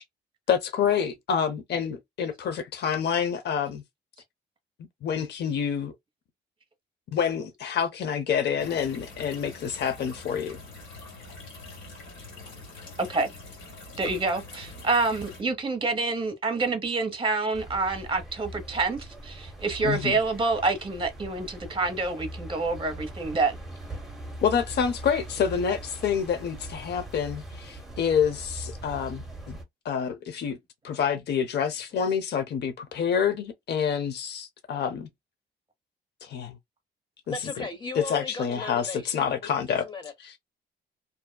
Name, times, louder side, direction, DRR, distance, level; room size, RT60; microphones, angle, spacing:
voice 1, 0.5-3.8 5.0-5.9 7.1-10.6 19.8-20.2 24.4-29.6 29.8-30.6 30.8-35.1 36.2-36.5 37.9-39.9 40.2-40.4, left 7 dB, 60° left, 0.6 m, -27 dB
sound 1, 8.6-15.4, left 2 dB, 75° left, 1.6 m, -44 dB
voice 2, 13.0-13.3 14.0-23.6, right 3 dB, 25° right, 1.0 m, -27 dB
sound 2, 17.5-29.6, right 1 dB, ahead, 1.2 m, -41 dB
voice 3, 37.3-40.1, left 3 dB, 25° left, 1.1 m, -37 dB
2.7 x 2.3 x 2.2 m
cardioid pair, 90°, 20 cm